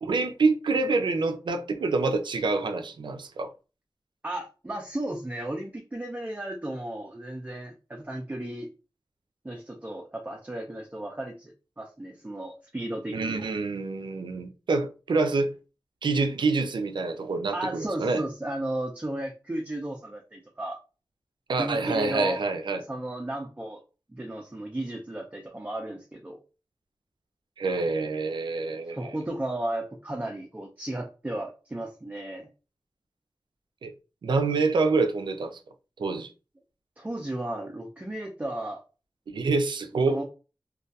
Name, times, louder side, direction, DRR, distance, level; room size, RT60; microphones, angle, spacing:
voice 1, 0.0-3.5 13.1-15.5 16.0-18.2 21.5-22.8 27.6-29.2 33.8-33.9 34.2-35.6 36.0-36.3 39.3-40.2, right 3 dB, 85° right, 0.4 m, -26 dB
voice 2, 4.2-8.7 9.4-13.4 17.5-20.8 21.6-22.4 22.9-23.8 24.1-26.4 28.9-32.5 37.0-38.8 40.1-40.2, right 1 dB, 20° right, 0.4 m, -34 dB
2.2 x 2.2 x 2.6 m
wide cardioid pair, 85°, 8 cm